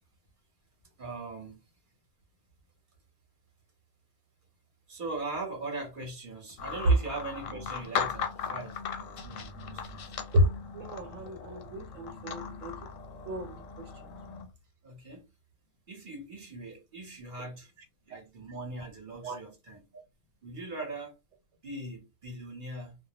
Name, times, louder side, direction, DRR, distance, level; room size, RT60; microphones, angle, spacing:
voice 1, 1.0-1.6 4.9-10.2 14.8-15.3 15.9-17.7 18.1-19.8 20.4-21.1 21.6-23.0, right 2 dB, 50° right, 0.8 m, -40 dB
sound 1, 6.6-14.5, left 6 dB, 90° left, 1.0 m, -38 dB
voice 2, 10.7-12.7 13.3-13.5 18.1-18.2 19.2-19.4, left 1 dB, 80° right, 1.0 m, -30 dB
2.2 x 2.0 x 2.8 m
omnidirectional pair, 1.3 m